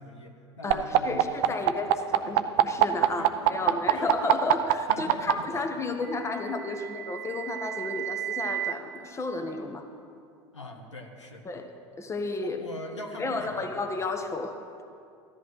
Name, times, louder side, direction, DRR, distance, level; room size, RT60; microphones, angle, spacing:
voice 1, 0.0-1.8 2.2-2.4 3.0-4.4 4.9-5.7 10.5-11.5 12.4-13.7, left 2 dB, 90° left, 3 dB, 1.2 m, -42 dB
voice 2, 0.6-9.8 11.4-11.7 12.0-12.6 13.2-14.6, left 3 dB, 20° left, 5 dB, 1.1 m, -32 dB
sound 1, 0.7-5.3 6.5-8.7, right 17 dB, 55° right, 0.6 m, -24 dB
14.0 x 13.0 x 3.2 m, 2.4 s
hypercardioid pair, 75°, 15 cm